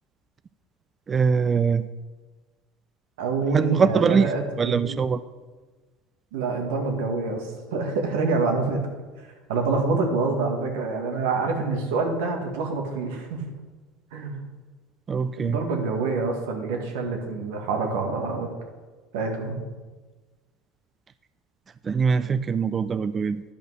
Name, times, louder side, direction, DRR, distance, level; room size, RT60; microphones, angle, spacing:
voice 1, 1.1-1.9 3.5-4.3 4.6-5.2 15.1-15.6 21.8-23.4, right 5 dB, 30° right, 13 dB, 0.3 m, -22 dB
voice 2, 3.2-5.0 6.3-8.8 9.5-13.4 14.1-14.4 15.4-18.5 19.1-19.6, right 4 dB, 90° right, 3 dB, 1.8 m, -26 dB
10.5 x 5.3 x 6.3 m, 1.3 s
supercardioid pair, 115°, 0 cm